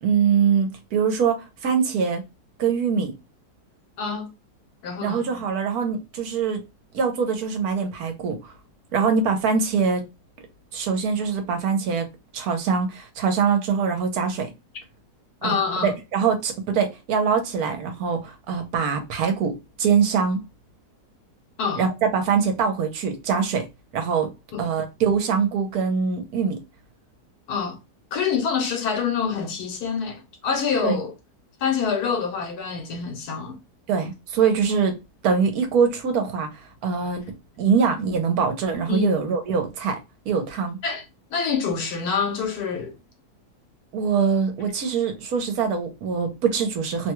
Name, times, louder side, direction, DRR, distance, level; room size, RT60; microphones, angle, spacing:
voice 1, 0.0-2.2 2.6-3.1 5.0-6.6 6.9-8.4 8.9-10.0 10.7-12.1 12.3-14.5 15.4-20.4 21.8-23.7 23.9-24.3 24.6-26.6 30.8-31.0 33.9-35.0 35.2-36.5 36.8-37.2 37.6-40.0 40.3-40.8 43.9-47.1, right 6 dB, 70° right, 1.2 m, -23 dB
voice 2, 4.0-4.3 4.8-5.3 15.4-15.9 21.6-21.9 24.5-24.7 27.5-27.8 28.1-31.1 31.6-33.6 38.9-39.1 40.8-41.0 41.3-43.0, left 6 dB, 70° left, 1.3 m, -26 dB
3.0 x 2.2 x 2.9 m
omnidirectional pair, 1.7 m